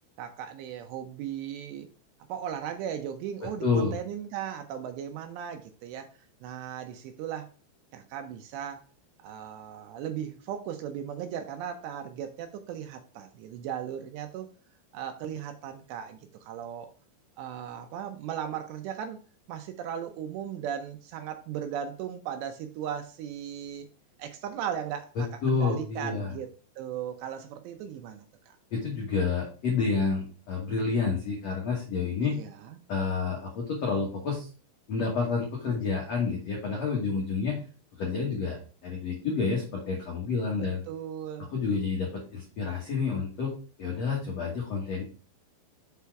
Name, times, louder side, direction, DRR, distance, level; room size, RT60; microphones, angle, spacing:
voice 1, 0.2-1.9 2.3-6.1 6.4-7.5 7.9-8.8 9.2-14.5 14.9-16.9 17.4-19.2 19.5-23.9 24.2-26.5 26.8-28.6 32.2-32.8 40.9-41.5, right 9 dB, 80° right, 6 dB, 2.6 m, -37 dB
voice 2, 3.6-3.9 25.1-26.3 28.7-32.3 32.9-34.5 34.9-37.6 38.0-40.8 41.5-43.5 43.8-45.0, left 4 dB, 80° left, -1 dB, 1.5 m, -29 dB
7.0 x 4.3 x 4.6 m, 0.38 s
omnidirectional pair, 5.4 m